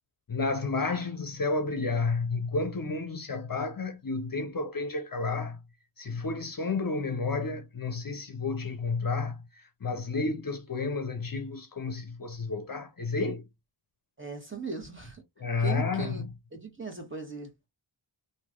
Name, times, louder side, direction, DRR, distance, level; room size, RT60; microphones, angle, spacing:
voice 1, 0.3-5.6 6.0-13.4 15.4-16.2, left 3 dB, 45° left, 0.7 m, -31 dB
voice 2, 14.2-16.2 16.5-17.5, right 4 dB, 25° right, 1.6 m, -39 dB
3.0 x 2.7 x 3.7 m
wide cardioid pair, 75°, 49 cm